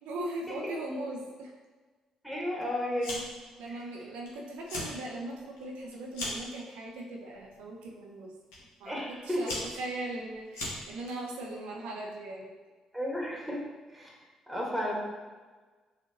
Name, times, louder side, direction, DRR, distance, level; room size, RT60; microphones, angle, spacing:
voice 1, 0.0-1.5 3.6-8.3 8.8-12.5, right 1 dB, 75° right, -1 dB, 0.6 m, -39 dB
voice 2, 2.2-3.2 3.7-3.9 8.8-9.4 12.9-13.6 13.9-14.1 14.5-15.0, equal, ahead, -3 dB, 1.5 m, -33 dB
Fire, 3.0-3.5 3.8-4.3 4.6-5.0 5.4-6.5 7.3-7.6 8.5-8.6 9.2-11.1, left 1 dB, 85° left, 0.9 m, -38 dB
6.3 x 2.5 x 2.8 m, 1.3 s
hypercardioid pair, 45°, 2 cm